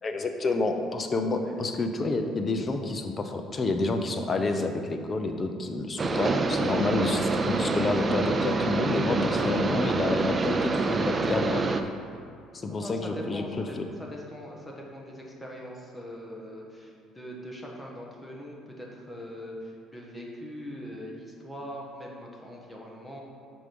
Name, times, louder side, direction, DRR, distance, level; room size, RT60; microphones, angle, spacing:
voice 1, 0.0-11.6 12.5-13.4, left 3 dB, 30° left, 6 dB, 0.7 m, -29 dB
sound 1, 6.0-11.8, right 3 dB, 30° right, 0.5 m, -26 dB
voice 2, 12.8-23.2, equal, 5° left, -2 dB, 1.3 m, -41 dB
6.1 x 4.9 x 5.3 m, 2.4 s
cardioid pair, 105°, 0 cm